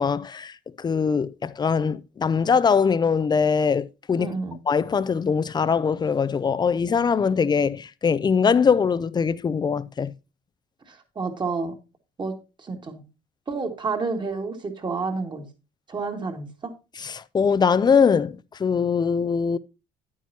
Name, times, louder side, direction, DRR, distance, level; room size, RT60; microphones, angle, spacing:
voice 1, 0.0-4.3 4.7-10.1 17.0-19.6, left 6 dB, 25° left, 0.5 m, -22 dB
voice 2, 4.2-4.6 10.9-11.7 12.2-12.3 12.6-13.0 13.5-15.4 15.9-16.5, right 4 dB, 25° right, 2.2 m, -29 dB
9.8 x 9.2 x 2.8 m
cardioid pair, 110°, 17 cm